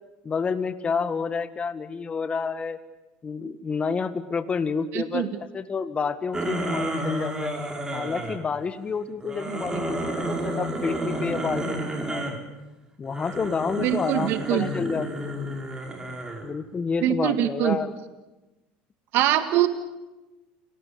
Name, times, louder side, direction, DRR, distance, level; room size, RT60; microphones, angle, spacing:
voice 1, 0.2-2.8 3.2-7.5 7.9-12.3 13.0-15.4 16.4-17.9, left 5 dB, 25° left, 11 dB, 1.9 m, -29 dB
voice 2, 4.9-5.3 9.5-9.6 13.8-14.7 17.0-17.8 19.1-19.7, right 12 dB, 65° right, 10 dB, 1.9 m, -23 dB
sound 1, 6.3-8.4 9.2-12.4 13.1-16.5, right 1 dB, 15° right, 5.2 m, -31 dB
29.0 x 19.0 x 8.7 m, 1.1 s
supercardioid pair, 105°, 4 cm